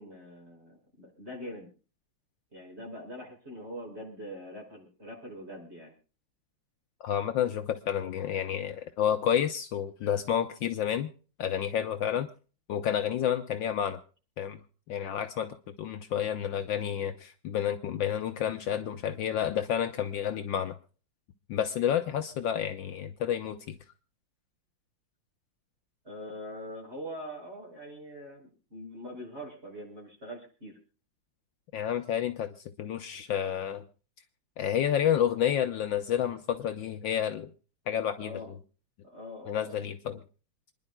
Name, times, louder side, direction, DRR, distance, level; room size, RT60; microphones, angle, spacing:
voice 1, 0.0-1.7 2.5-5.9 26.0-30.8 38.2-38.5 39.0-39.8, equal, 30° right, 0 dB, 6.2 m, -43 dB
voice 2, 7.0-11.1 11.4-12.3 12.7-14.0 14.4-14.6 14.9-20.7 21.5-23.7 31.7-33.8 34.6-37.5 37.9-38.4 39.5-40.2, left 9 dB, 70° left, 7 dB, 1.4 m, -30 dB
28.0 x 11.0 x 2.2 m, 0.37 s
omnidirectional pair, 2.3 m